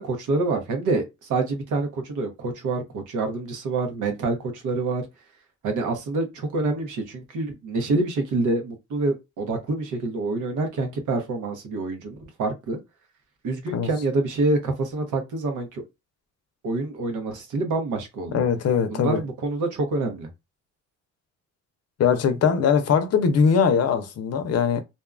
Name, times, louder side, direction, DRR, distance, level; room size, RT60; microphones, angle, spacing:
voice 1, 0.0-5.0 5.6-12.8 13.4-15.8 16.6-18.4 18.9-20.3, right 3 dB, 85° right, 1.0 m, -27 dB
voice 2, 18.3-19.2 22.0-24.8, left 6 dB, 55° left, 0.6 m, -21 dB
2.7 x 2.2 x 2.4 m
cardioid pair, 90°, 30 cm